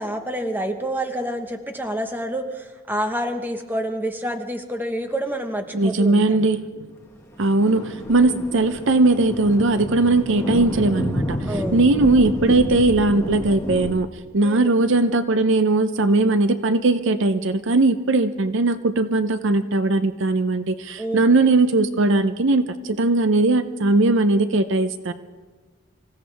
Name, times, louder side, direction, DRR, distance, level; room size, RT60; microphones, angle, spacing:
voice 1, 0.0-6.5 8.2-8.4 11.5-11.9 14.4-14.7 21.0-21.6, right 1 dB, 10° right, 5 dB, 1.2 m, -28 dB
voice 2, 5.7-6.7 7.4-14.1 14.3-25.1, right 2 dB, 60° right, 10 dB, 0.6 m, -19 dB
Thunder, 7.1-14.0, equal, 10° left, 1.6 m, -30 dB
26.0 x 16.0 x 3.5 m, 1.4 s
head